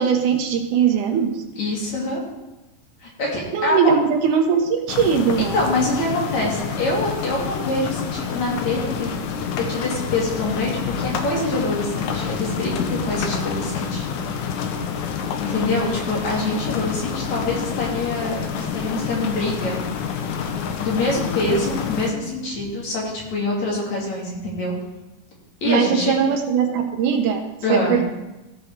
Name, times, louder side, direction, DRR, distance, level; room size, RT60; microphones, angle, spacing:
voice 1, 0.0-1.4 3.5-5.5 25.7-27.4 27.7-28.0, right 7 dB, 70° right, 5 dB, 2.1 m, -20 dB
voice 2, 1.6-2.2 3.0-3.9 5.4-9.1 9.6-14.0 15.3-19.8 20.8-24.7 25.6-26.2 27.6-28.0, left 2 dB, 50° left, -3 dB, 3.8 m, -25 dB
sound 1, 4.9-22.1, left 6 dB, 70° left, 2.0 m, -28 dB
15.5 x 6.9 x 4.7 m, 1.0 s
omnidirectional pair, 4.3 m